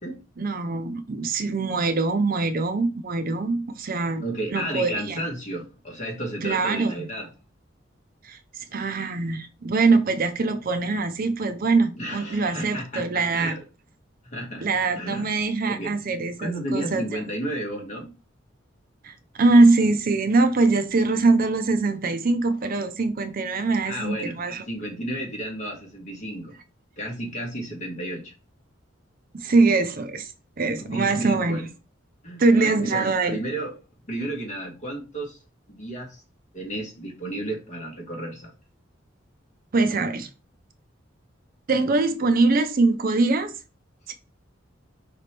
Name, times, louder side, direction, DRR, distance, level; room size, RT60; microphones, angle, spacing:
voice 1, 0.4-4.2 4.5-5.2 6.4-7.0 8.2-13.5 14.6-17.0 19.0-24.6 29.3-30.3 30.6-31.7 32.4-33.4 39.7-40.3 41.7-43.5 44.1-44.2, right 3 dB, 50° right, 0.5 m, -23 dB
voice 2, 4.2-7.3 11.9-13.6 14.2-14.7 14.9-15.3 15.7-16.0 16.4-18.1 23.8-24.4 24.7-26.5 27.0-28.3 30.8-31.7 32.2-33.8 34.1-35.4 35.7-36.2 36.5-38.5, right 1 dB, 40° left, 1.5 m, -32 dB
5.0 x 2.9 x 3.3 m
head